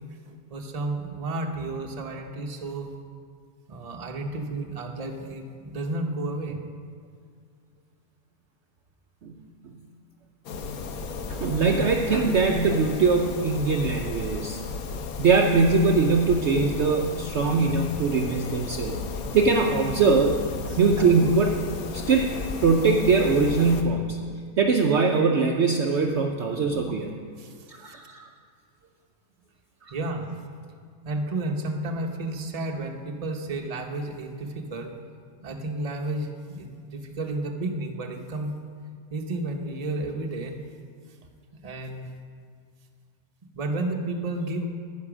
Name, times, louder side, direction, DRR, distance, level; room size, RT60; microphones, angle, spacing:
voice 1, 0.2-2.9 3.7-6.6 20.7-20.8 27.4-28.0 29.9-30.3 31.0-34.9 35.4-38.5 39.1-40.5 41.6-42.1 43.5-44.7, right 2 dB, 30° right, 3 dB, 0.9 m, -32 dB
sound 1, 10.5-23.8, left 4 dB, 85° left, 1.3 m, -34 dB
voice 2, 11.3-14.6 15.2-18.9 19.3-20.4 20.8-21.6 21.9-22.3 22.6-24.2 24.6-27.1 27.7-28.2 29.9-30.0, right 4 dB, 60° right, 3 dB, 0.8 m, -22 dB
9.8 x 9.6 x 6.1 m, 2.1 s
omnidirectional pair, 1.5 m